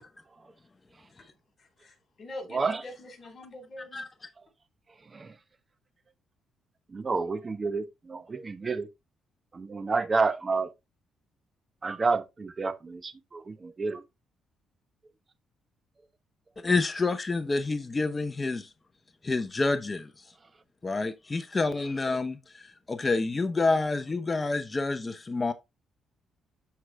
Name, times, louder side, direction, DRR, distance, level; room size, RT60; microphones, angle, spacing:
voice 1, 1.8-4.0, left 1 dB, 40° left, 4.3 m, -43 dB
voice 2, 2.5-2.8 5.1-5.3 6.9-8.9 9.5-10.7 11.8-14.0, right 4 dB, 30° right, 0.9 m, -29 dB
voice 3, 16.6-18.7 19.2-20.1 20.8-22.4 22.9-25.5, left 3 dB, 25° left, 0.8 m, -28 dB
12.5 x 4.8 x 2.2 m
cardioid pair, 90°, 0 cm